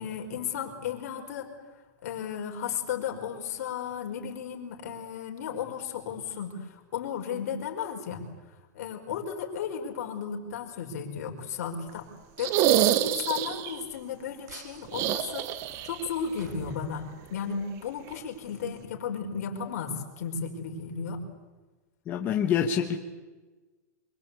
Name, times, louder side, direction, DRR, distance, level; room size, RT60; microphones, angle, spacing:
voice 1, 0.0-1.5 2.0-8.2 8.7-12.1 12.4-15.5 15.8-21.2, left 7 dB, 55° left, 2 dB, 5.0 m, -34 dB
sound 1, 12.4-13.8 14.9-16.1 16.3-16.4 18.1-18.2, right 12 dB, 25° right, 1.0 m, -26 dB
sound 2, 14.5-17.7, right 2 dB, 65° right, 5.1 m, -49 dB
voice 2, 22.1-23.0, left 8 dB, 20° left, 2 dB, 1.4 m, -26 dB
25.5 x 23.5 x 8.4 m, 1.2 s
supercardioid pair, 170°, 10 cm